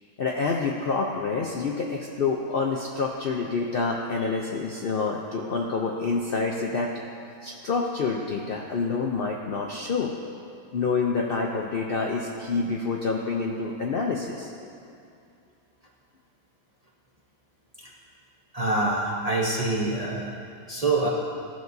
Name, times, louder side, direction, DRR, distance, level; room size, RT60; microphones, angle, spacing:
voice 1, 0.2-6.9 7.4-10.1 10.7-14.5, left 4 dB, 60° left, 0 dB, 0.6 m, -27 dB
voice 2, 18.5-20.3 20.7-21.1, right 2 dB, 35° right, -4 dB, 0.6 m, -25 dB
15.0 x 6.1 x 2.7 m, 2.5 s
omnidirectional pair, 1.6 m